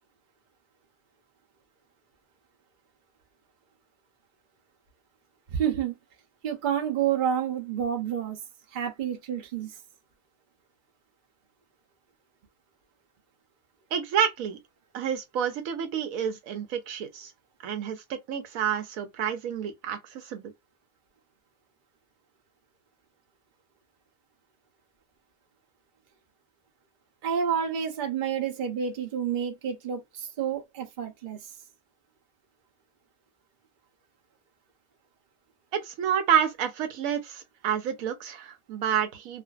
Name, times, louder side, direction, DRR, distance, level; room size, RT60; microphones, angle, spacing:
voice 1, 5.5-6.0 6.4-8.4 8.7-9.8 27.2-31.4, right 8 dB, 45° right, 0.7 m, -29 dB
voice 2, 13.9-14.6 14.9-17.3 17.6-20.5 35.7-39.4, right 8 dB, 90° right, 1.0 m, -29 dB
2.5 x 2.5 x 2.3 m
omnidirectional pair, 1.4 m